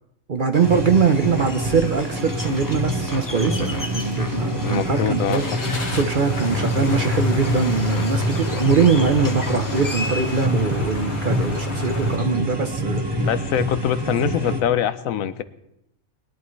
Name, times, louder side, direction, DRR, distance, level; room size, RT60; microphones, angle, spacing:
voice 1, 0.3-5.4 5.9-13.3, right 5 dB, 45° right, 7 dB, 0.8 m, -22 dB
sound 1, 0.5-10.5, left 2 dB, 20° left, 0.6 m, -35 dB
sound 2, 0.6-14.6, equal, 20° right, 1.3 m, -27 dB
sound 3, 2.1-2.3 2.7-2.8 5.3-12.2, left 3 dB, 50° left, 1.8 m, -29 dB
voice 2, 4.6-5.4 13.2-15.4, left 10 dB, 80° left, 13 dB, 1.1 m, -23 dB
20.5 x 11.0 x 3.2 m, 0.81 s
omnidirectional pair, 1.4 m